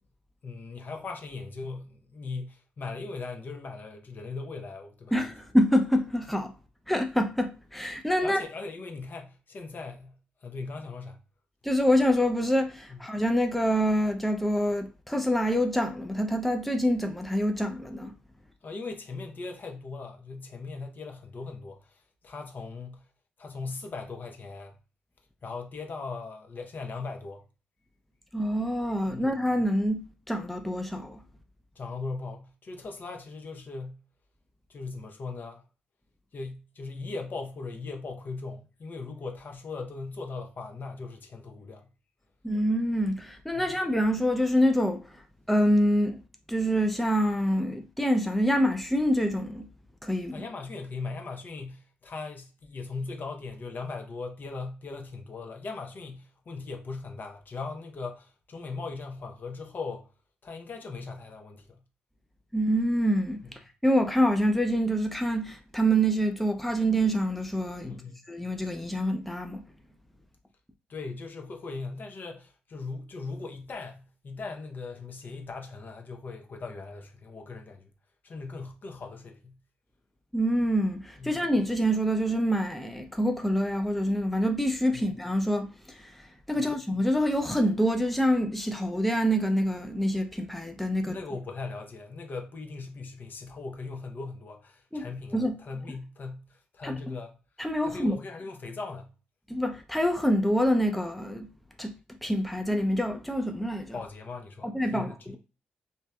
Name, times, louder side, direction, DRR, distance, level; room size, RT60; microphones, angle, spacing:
voice 1, 0.4-5.1 8.2-11.2 12.9-13.0 18.6-23.0 23.4-24.8 25.4-27.4 29.0-29.3 31.8-34.0 34.7-35.6 36.3-41.9 43.5-43.8 50.3-60.1 60.4-61.8 67.8-68.2 70.9-77.9 78.2-79.6 81.2-81.4 84.9-85.0 86.5-86.7 91.0-97.4 97.8-99.1 103.9-105.4, left 3 dB, 50° left, 0.7 m, -39 dB
voice 2, 5.1-6.5 6.9-8.4 11.6-18.1 28.3-31.2 42.4-45.2 45.5-46.2 46.5-49.7 50.0-50.4 62.5-68.0 68.3-69.6 80.3-91.2 94.9-95.1 95.3-95.6 96.8-97.2 97.6-98.2 99.5-101.5 101.8-102.0 102.2-104.0 104.6-105.4, equal, 5° left, 0.4 m, -26 dB
2.7 x 2.1 x 2.2 m
supercardioid pair, 50°, 4 cm